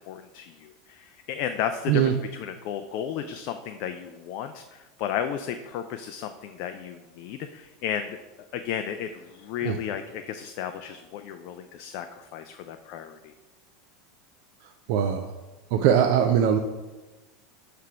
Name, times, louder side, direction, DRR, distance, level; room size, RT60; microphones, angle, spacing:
voice 1, 0.0-8.2 8.5-13.3, left 9 dB, 50° left, 7 dB, 0.3 m, -34 dB
voice 2, 14.9-15.3 15.7-16.6, right 9 dB, 50° right, 7 dB, 0.4 m, -21 dB
6.5 x 3.3 x 5.8 m, 1.2 s
figure-of-eight pair, 80°, 0 cm